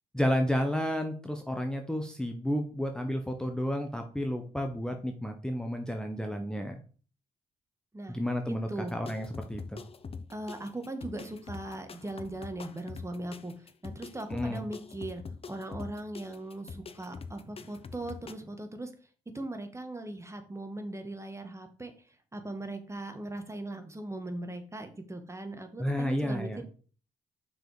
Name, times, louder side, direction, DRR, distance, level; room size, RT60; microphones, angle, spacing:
voice 1, 0.1-6.8 8.1-9.8 14.3-14.6 25.8-26.6, equal, 5° left, 4 dB, 1.1 m, -31 dB
voice 2, 8.5-8.9 10.3-15.2 15.5-18.9 19.3-21.9 22.3-26.6, right 1 dB, 20° right, 7 dB, 1.6 m, -39 dB
sound 1, 8.8-18.3, left 5 dB, 40° left, 0.8 m, -44 dB
6.1 x 4.8 x 5.0 m, 0.40 s
hypercardioid pair, 50°, 15 cm